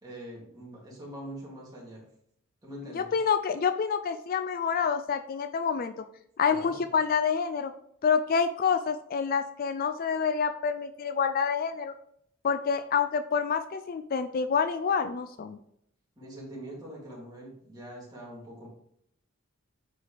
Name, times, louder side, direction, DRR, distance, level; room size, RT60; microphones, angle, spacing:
voice 1, 0.0-2.0 2.6-3.1 6.5-6.9 16.2-18.7, right 1 dB, 20° right, -5 dB, 2.6 m, -43 dB
voice 2, 2.9-5.9 6.4-7.7 8.0-11.9 12.4-15.6, left 6 dB, 45° left, 10 dB, 0.4 m, -27 dB
8.9 x 4.7 x 3.3 m, 0.71 s
head